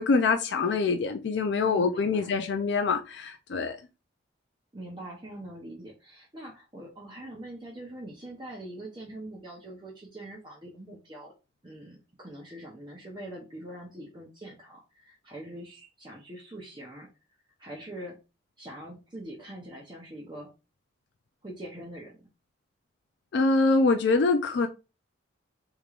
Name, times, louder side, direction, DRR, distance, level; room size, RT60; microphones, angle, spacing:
voice 1, 0.0-3.7 23.3-24.7, left 3 dB, 60° left, 0.4 m, -24 dB
voice 2, 1.6-2.4 4.7-11.3 11.6-17.1 17.6-18.2 18.6-20.5 21.4-22.2, right 1 dB, 25° right, 0.6 m, -43 dB
3.6 x 3.1 x 2.4 m
head